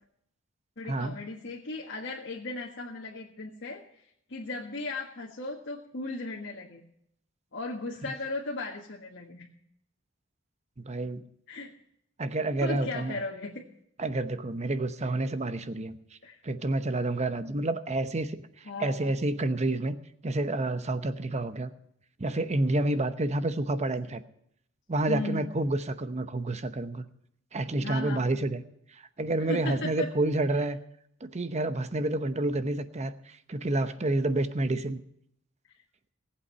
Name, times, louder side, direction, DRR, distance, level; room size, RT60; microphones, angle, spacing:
voice 1, 0.8-3.8 4.3-6.8 7.5-9.5 11.5-11.7 12.6-13.6 16.2-16.4 18.6-19.1 25.1-25.5 27.8-28.3 29.4-30.1, left 2 dB, 60° left, -3 dB, 1.6 m, -36 dB
voice 2, 10.8-11.2 12.2-13.1 14.0-16.0 16.4-18.4 18.8-19.9 20.2-21.7 22.2-24.2 24.9-27.0 27.5-28.6 29.2-30.8 31.2-35.0, right 2 dB, 35° right, 11 dB, 0.9 m, -29 dB
18.5 x 8.4 x 5.6 m, 0.73 s
head